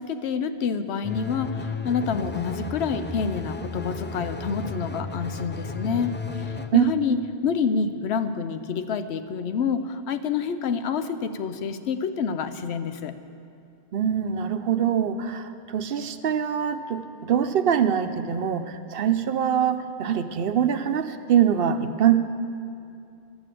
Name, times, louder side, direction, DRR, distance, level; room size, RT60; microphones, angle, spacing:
voice 1, 0.0-6.1 6.7-13.1, left 6 dB, 85° left, 10 dB, 1.0 m, -27 dB
sound 1, 1.0-6.7, left 4 dB, 15° left, 0.4 m, -34 dB
voice 2, 13.9-22.2, right 9 dB, 65° right, 9 dB, 0.8 m, -23 dB
12.5 x 8.8 x 7.6 m, 2.5 s
omnidirectional pair, 1.1 m